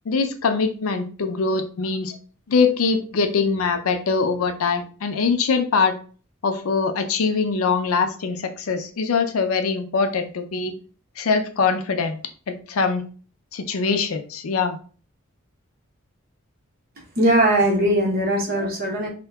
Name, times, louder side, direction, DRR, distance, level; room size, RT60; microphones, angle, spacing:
voice 1, 0.1-2.2 2.5-6.0 6.4-10.7 11.2-12.2 12.5-13.0 13.5-14.8, left 4 dB, 85° left, 7 dB, 0.5 m, -22 dB
voice 2, 17.2-19.1, right 1 dB, 45° right, -1 dB, 0.9 m, -20 dB
2.8 x 2.2 x 3.4 m, 0.39 s
head